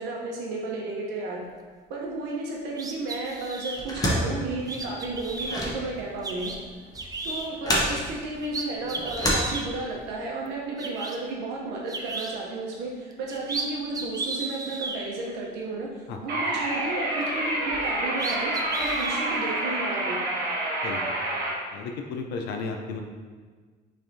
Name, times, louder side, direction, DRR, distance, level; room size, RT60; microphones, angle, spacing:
voice 1, 0.0-1.5 1.9-6.5 7.2-18.5 18.8-20.2, right 2 dB, 85° right, -3 dB, 0.8 m, -33 dB
sound 1, 2.7-3.8 4.6-5.6 6.2-6.5 6.9-7.5 8.0-8.1 8.4-9.7 10.5-10.6 10.8-11.2 11.9-12.3 13.1-13.6 13.9-15.0 17.7-17.8 18.2-19.2, right 3 dB, 20° right, 0.5 m, -34 dB
sound 2, 3.8-10.1, equal, 20° left, 1.0 m, -30 dB
sound 3, 16.3-21.5, right 1 dB, 60° right, 1.1 m, -28 dB
voice 2, 20.8-21.1 21.7-23.0, left 4 dB, 75° left, 4 dB, 0.5 m, -33 dB
5.7 x 3.3 x 2.7 m, 1.5 s
cardioid pair, 110°, 17 cm